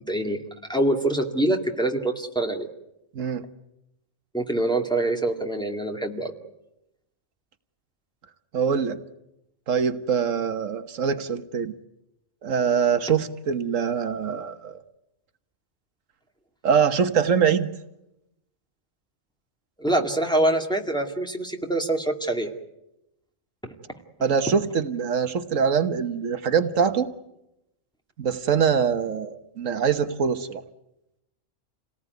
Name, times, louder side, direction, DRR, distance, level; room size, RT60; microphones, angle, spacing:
voice 1, 0.1-0.4 0.7-2.7 4.3-6.3 19.8-22.5 23.6-23.7, right 1 dB, 5° left, 2 dB, 2.2 m, -25 dB
voice 2, 3.1-3.4 8.5-9.0 9.7-11.7 12.4-14.8 16.6-17.7 24.2-27.1 28.2-30.6, right 6 dB, 90° right, 9 dB, 1.6 m, -23 dB
28.0 x 18.5 x 9.4 m, 0.90 s
omnidirectional pair, 1.3 m